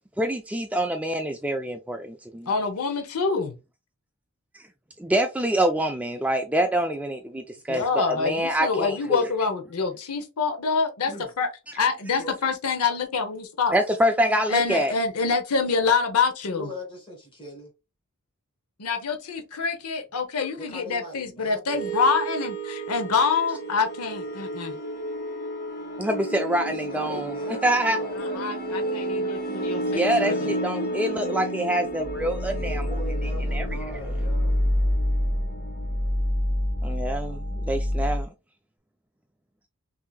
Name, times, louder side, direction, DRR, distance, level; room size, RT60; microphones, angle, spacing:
voice 1, 0.2-2.5 5.0-9.2 13.7-14.9 26.0-27.3 27.6-28.0 29.9-32.8 33.5-33.7 36.8-38.3, right 1 dB, 5° right, 0.3 m, -25 dB
voice 2, 2.5-3.5 7.7-11.1 11.4-13.7 14.5-16.7 18.8-24.7 28.1-30.5, left 5 dB, 85° left, 0.8 m, -26 dB
voice 3, 16.5-17.7 20.6-21.9 26.7-29.4 32.5-34.6, equal, 25° left, 2.3 m, -41 dB
sound 1, 21.7-38.2, equal, 45° left, 1.1 m, -28 dB
5.8 x 2.7 x 2.3 m
head